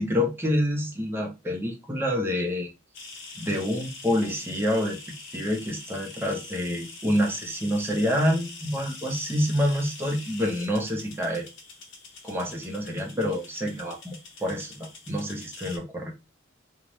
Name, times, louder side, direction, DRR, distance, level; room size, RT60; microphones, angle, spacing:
voice 1, 0.0-2.7 3.3-5.0 5.3-11.5 12.2-16.1, equal, 10° right, 0.6 m, -27 dB
sound 1, 2.9-15.8, left 3 dB, 65° left, 0.7 m, -44 dB
2.5 x 2.1 x 3.1 m
head